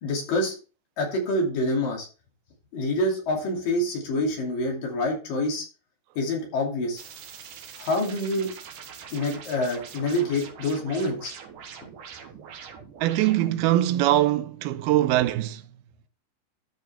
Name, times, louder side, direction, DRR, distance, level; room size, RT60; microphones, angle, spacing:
voice 1, 0.0-0.6 1.0-2.1 2.7-5.7 6.2-7.0 7.8-8.5 9.1-11.3, left 1 dB, 65° left, 4.3 m, -26 dB
sound 1, 7.0-13.7, right 7 dB, 65° right, 2.7 m, -43 dB
voice 2, 13.0-15.6, right 14 dB, 85° right, 2.6 m, -22 dB
13.0 x 5.7 x 3.6 m
omnidirectional pair, 4.3 m